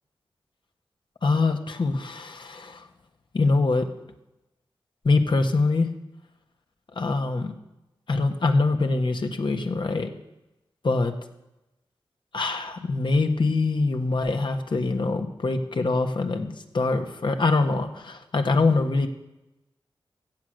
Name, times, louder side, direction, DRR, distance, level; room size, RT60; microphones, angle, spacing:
voice 1, 1.2-2.9 3.3-3.9 5.0-5.9 6.9-7.5 8.1-10.1 10.8-11.1 12.3-19.1, left 3 dB, 60° left, 6 dB, 1.4 m, -24 dB
15.0 x 7.8 x 6.6 m, 0.96 s
cardioid pair, 55°, 9 cm